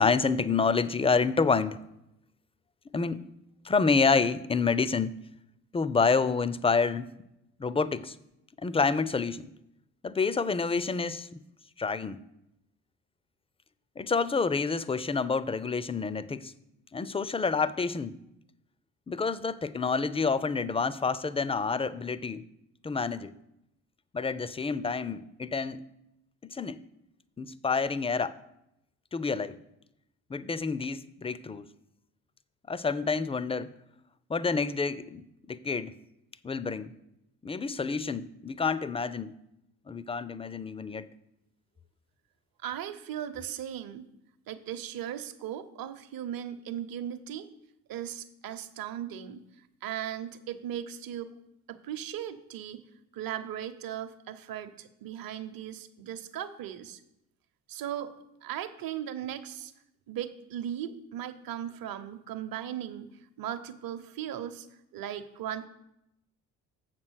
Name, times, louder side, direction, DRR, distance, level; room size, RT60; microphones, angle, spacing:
voice 1, 0.0-1.8 2.9-3.2 3.6-5.1 5.7-7.1 7.6-8.1 8.6-9.5 10.0-11.4 11.8-12.2 14.0-16.5 16.9-18.2 19.1-22.5 22.8-23.3 24.1-25.8 26.4-26.8 27.4-28.4 29.1-29.6 30.3-31.7 32.7-33.7 34.3-36.0 36.4-36.9 37.4-39.3 39.9-41.1, left 4 dB, 15° left, 0.5 m, -28 dB
voice 2, 42.6-44.1 44.5-47.5 47.9-49.4 49.8-51.3 51.7-52.8 53.1-57.0 57.7-58.1 58.4-59.7 60.1-63.1 63.4-64.7 64.9-65.7, right 10 dB, 55° right, 0.9 m, -37 dB
7.4 x 6.0 x 6.4 m
hypercardioid pair, 55°, 42 cm